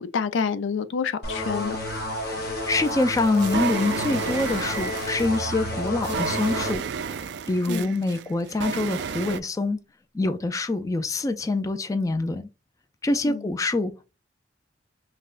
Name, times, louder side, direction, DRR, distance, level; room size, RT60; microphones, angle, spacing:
voice 1, 0.0-1.8 7.7-7.9 13.2-13.4, left 5 dB, 85° left, 0.4 m, -28 dB
sound 1, 1.2-6.8, left 1 dB, 55° left, 0.9 m, -31 dB
voice 2, 2.3-9.8 10.1-12.5 13.0-14.1, left 2 dB, 15° left, 0.3 m, -25 dB
sound 2, 2.7-9.4, right 6 dB, 60° right, 0.3 m, -32 dB
sound 3, 5.2-7.4, right 4 dB, ahead, 0.7 m, -40 dB
5.7 x 2.1 x 2.5 m
head